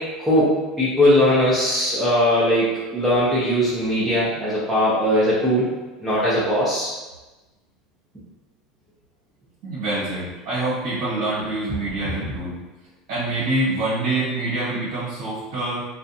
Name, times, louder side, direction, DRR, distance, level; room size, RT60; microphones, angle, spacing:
voice 1, 0.0-5.7 6.0-6.9, equal, 5° right, -10 dB, 0.5 m, -20 dB
voice 2, 9.6-12.6 13.1-15.8, right 2 dB, 70° right, -9 dB, 1.2 m, -25 dB
2.5 x 2.2 x 2.6 m, 1.1 s
cardioid pair, 155°, 0 cm